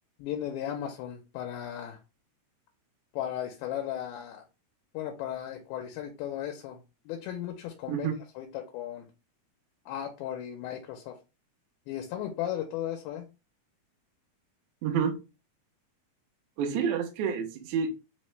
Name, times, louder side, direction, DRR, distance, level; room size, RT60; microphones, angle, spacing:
voice 1, 0.2-2.0 3.1-4.4 4.9-9.1 9.9-11.2 11.9-13.3, left 11 dB, 85° left, 3 dB, 2.5 m, -36 dB
voice 2, 7.9-8.2 14.8-15.2 16.6-17.9, right 7 dB, 80° right, 3 dB, 1.7 m, -29 dB
5.7 x 2.1 x 3.1 m, 0.29 s
omnidirectional pair, 4.3 m